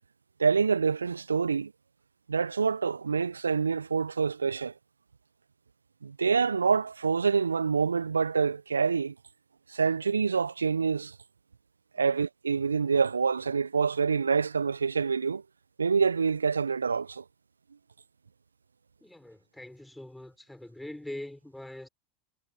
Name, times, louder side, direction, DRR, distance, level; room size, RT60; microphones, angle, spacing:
voice 1, 0.4-1.7 2.3-4.7 6.0-9.1 9.7-11.1 11.9-15.4 15.8-17.2, right 5 dB, 80° right, 0.5 m, -26 dB
voice 2, 19.0-21.9, left 1 dB, 5° left, 5.8 m, -43 dB
figure-of-eight pair, 85°, 0 cm